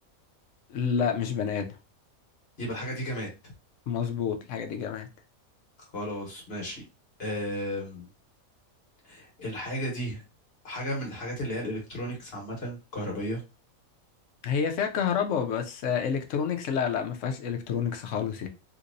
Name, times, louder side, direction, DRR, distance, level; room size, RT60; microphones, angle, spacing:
voice 1, 0.7-1.7 3.9-5.1 14.4-18.5, left 7 dB, 65° left, 0.9 m, -29 dB
voice 2, 2.6-3.5 5.9-6.8 7.2-8.1 9.0-10.2 10.6-13.4, equal, 45° left, 1.4 m, -34 dB
3.4 x 2.9 x 2.6 m
omnidirectional pair, 1.5 m